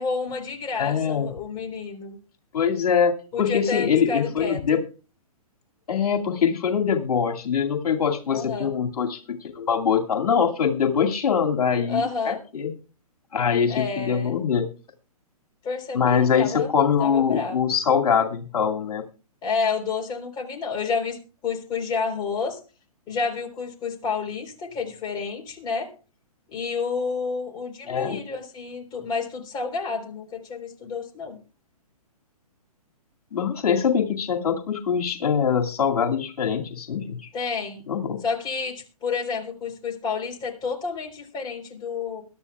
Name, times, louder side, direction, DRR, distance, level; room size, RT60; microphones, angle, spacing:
voice 1, 0.0-2.2 3.3-4.6 8.3-8.7 11.8-12.4 13.7-14.4 15.6-17.6 19.4-21.2 21.4-22.6 23.1-25.9 26.5-31.4 37.3-37.8 38.2-42.2, left 5 dB, 20° left, 1 dB, 4.0 m, -30 dB
voice 2, 0.8-1.3 2.5-4.8 5.9-12.7 13.3-14.7 15.9-19.0 27.9-28.2 33.3-37.3 37.9-38.2, left 7 dB, 75° left, 2 dB, 2.4 m, -23 dB
23.0 x 11.5 x 2.4 m, 0.35 s
hypercardioid pair, 135°, 19 cm